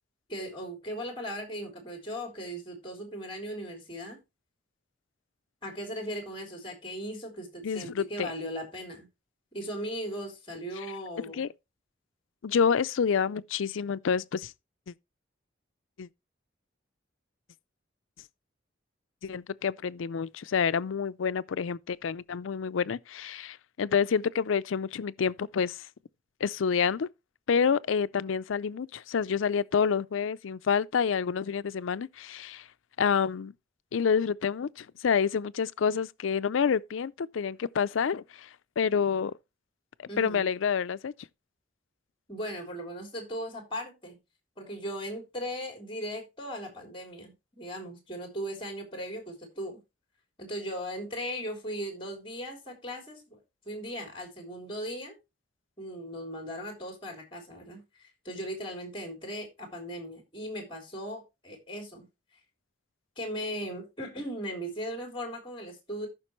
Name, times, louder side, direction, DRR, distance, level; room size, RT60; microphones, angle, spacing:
voice 1, 0.3-4.2 5.6-9.1 9.5-11.4 40.1-40.5 42.3-44.2 44.6-49.8 50.4-53.4 53.6-55.1 55.8-62.0 63.1-66.1, equal, 25° left, 3.4 m, -38 dB
voice 2, 7.6-8.3 11.3-11.5 12.4-14.5 14.9-15.0 16.0-16.1 19.2-25.9 26.4-27.1 27.5-32.7 33.0-33.5 33.9-38.5 38.8-39.3 40.0-41.1, left 6 dB, 90° left, 0.4 m, -28 dB
14.5 x 5.9 x 3.1 m
head